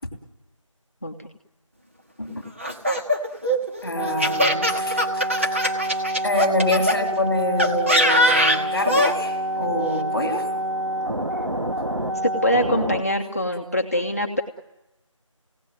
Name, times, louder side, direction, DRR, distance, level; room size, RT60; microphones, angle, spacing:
Laughter, 2.6-7.0 7.6-9.1, equal, 25° right, 1.3 m, -21 dB
voice 1, 3.8-5.5 6.2-10.5, left 1 dB, 5° left, -15 dB, 1.7 m, -26 dB
sound 1, 4.0-13.0, right 1 dB, 60° right, 1.6 m, -27 dB
voice 2, 12.2-14.4, left 1 dB, 30° left, 2 dB, 1.1 m, -23 dB
29.5 x 17.5 x 9.4 m, 1.0 s
figure-of-eight pair, 170°, 17 cm